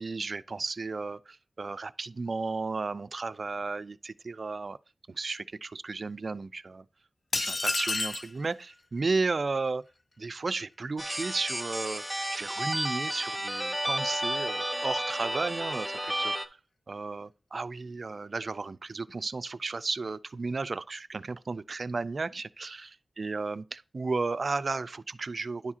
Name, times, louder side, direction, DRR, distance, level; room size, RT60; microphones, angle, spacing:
voice 1, 0.0-4.8 5.1-6.9 7.3-9.8 10.2-12.0 12.3-16.3 16.9-22.9 23.2-25.8, right 3 dB, 60° right, 0.3 m, -34 dB
sound 1, 7.3-8.3, left 2 dB, 50° left, 0.4 m, -29 dB
sound 2, 11.0-16.5, right 1 dB, 5° right, 0.7 m, -32 dB
10.5 x 4.7 x 2.8 m
cardioid pair, 55°, 0 cm